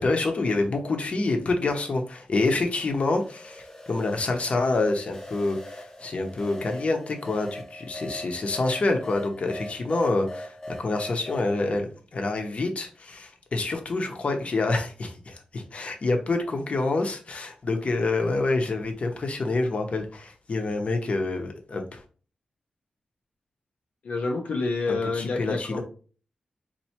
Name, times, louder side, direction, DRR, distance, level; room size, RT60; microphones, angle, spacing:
voice 1, 0.0-22.0 25.1-25.8, left 3 dB, 55° left, 4 dB, 0.8 m, -27 dB
sound 1, 2.4-11.5, left 1 dB, 25° left, 0.8 m, -41 dB
voice 2, 24.0-25.8, left 3 dB, 80° left, 1 dB, 0.6 m, -28 dB
4.3 x 2.7 x 2.9 m, 0.39 s
wide cardioid pair, 80°, 3 cm